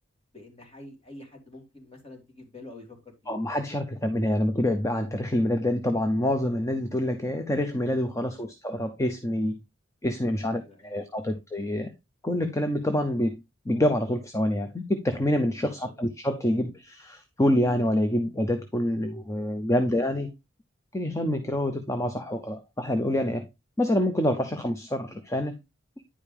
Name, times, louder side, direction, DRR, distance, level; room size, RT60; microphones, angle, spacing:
voice 1, 0.3-3.3 8.2-8.5 10.4-11.3 15.6-15.9 19.7-19.9, left 2 dB, 30° left, 2.8 m, -48 dB
voice 2, 3.3-9.6 10.0-11.9 12.2-20.3 20.9-23.5 23.8-25.6, left 1 dB, 15° left, 0.7 m, -26 dB
9.9 x 5.1 x 3.4 m
head